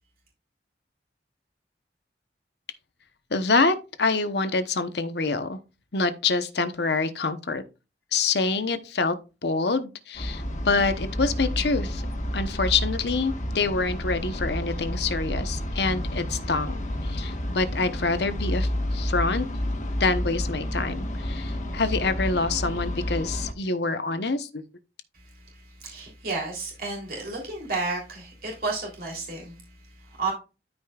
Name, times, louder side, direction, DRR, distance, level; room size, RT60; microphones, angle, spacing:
voice 1, 3.3-5.6 5.9-7.6 8.1-9.1 9.4-12.0 12.3-19.4 20.0-24.6, left 4 dB, 70° left, 1.0 m, -26 dB
sound 1, 10.1-23.5, equal, 45° left, 1.5 m, -30 dB
voice 2, 25.1-30.3, right 3 dB, 55° right, 3.3 m, -32 dB
13.0 x 5.1 x 2.4 m
head